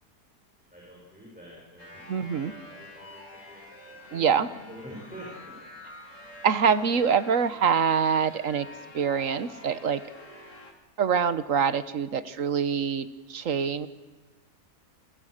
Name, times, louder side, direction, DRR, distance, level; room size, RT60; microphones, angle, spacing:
voice 1, 0.7-2.1 2.4-4.3 4.7-5.8 6.2-6.5, equal, 5° right, -4 dB, 7.0 m, -47 dB
sound 1, 1.8-10.7, left 2 dB, 50° left, 3.3 m, -47 dB
voice 2, 2.1-2.5 4.1-4.5 6.4-8.7 8.9-10.0 11.0-13.9, right 6 dB, 60° right, 14 dB, 1.3 m, -25 dB
27.0 x 23.0 x 6.6 m, 1.3 s
omnidirectional pair, 1.7 m